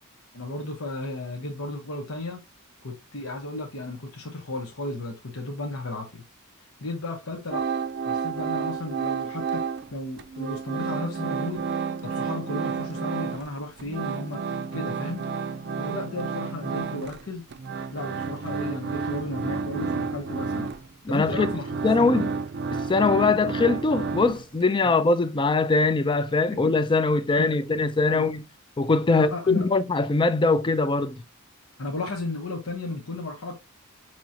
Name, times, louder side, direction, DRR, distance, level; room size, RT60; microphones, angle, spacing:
voice 1, 0.3-2.4 2.8-6.2 6.8-7.7 8.0-9.6 9.9-11.7 12.0-14.4 14.7-15.2 15.8-17.4 17.9-20.7 21.1-21.7 22.0-22.3 24.8-24.9 26.5-26.6 27.4-27.5 28.1-28.3 29.1-29.7 31.8-33.6, left 2 dB, 75° left, 1.1 m, -34 dB
sound 1, 7.5-9.9 10.2-13.5 13.8-24.7, right 5 dB, 50° right, 0.5 m, -31 dB
voice 2, 21.1-21.5 21.8-22.3 22.7-28.4 28.8-31.2, left 3 dB, 20° left, 0.4 m, -22 dB
6.0 x 3.0 x 2.7 m
head